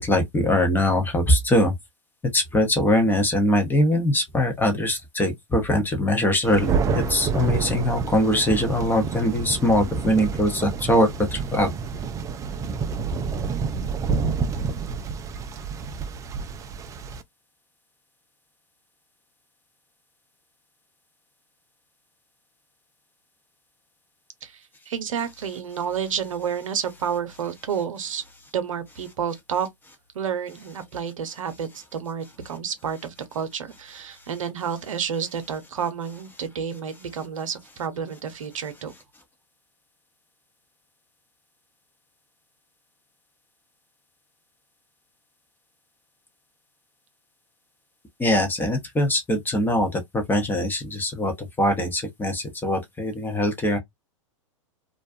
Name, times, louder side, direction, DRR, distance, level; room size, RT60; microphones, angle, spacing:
voice 1, 0.0-1.7 2.3-11.7 48.2-51.3 51.6-53.8, left 1 dB, 10° left, 0.8 m, -22 dB
Thunder, 6.4-17.2, right 5 dB, 20° right, 0.3 m, -29 dB
voice 2, 24.4-28.2 28.5-29.7 30.1-38.9, right 7 dB, 75° right, 0.7 m, -30 dB
2.4 x 2.2 x 2.4 m
hypercardioid pair, 105°, 17 cm